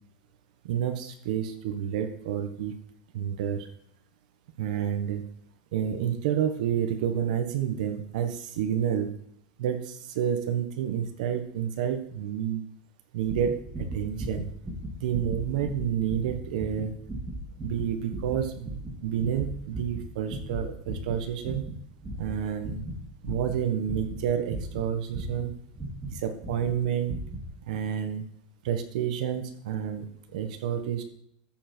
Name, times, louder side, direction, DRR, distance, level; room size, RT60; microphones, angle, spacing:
voice 1, 0.6-2.7 3.1-3.7 4.6-5.2 5.7-9.1 9.6-12.6 13.1-13.6 13.9-14.5 15.0-16.9 17.6-21.6 22.2-22.8 23.2-25.5 26.1-27.2 27.7-28.2 28.6-31.0, right 9 dB, 75° right, 6 dB, 1.5 m, -29 dB
sound 1, 13.2-26.1 26.4-26.8 27.0-27.5 27.7-27.8, right 1 dB, 10° right, 2.4 m, -37 dB
13.5 x 7.4 x 4.6 m, 0.69 s
supercardioid pair, 170°, 4 cm